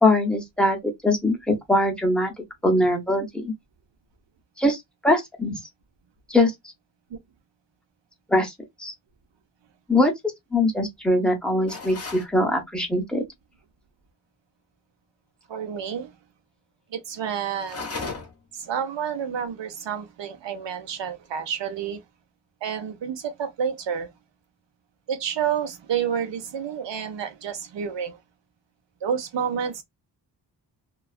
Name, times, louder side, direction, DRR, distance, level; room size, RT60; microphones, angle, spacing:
voice 1, 0.0-2.3 2.6-3.5 4.6-5.6 6.3-6.5 8.3-8.5 8.8-8.9 9.9-10.1 10.5-13.2, left 1 dB, ahead, 0.7 m, -22 dB
sound 1, 11.7-12.3 17.6-18.5, left 3 dB, 35° left, 0.7 m, -35 dB
voice 2, 15.5-16.2 16.9-17.9 18.6-22.0 22.6-24.1 25.1-28.2 29.0-29.8, right 8 dB, 75° right, 0.7 m, -29 dB
2.3 x 2.3 x 2.4 m
wide cardioid pair, 150°, 43 cm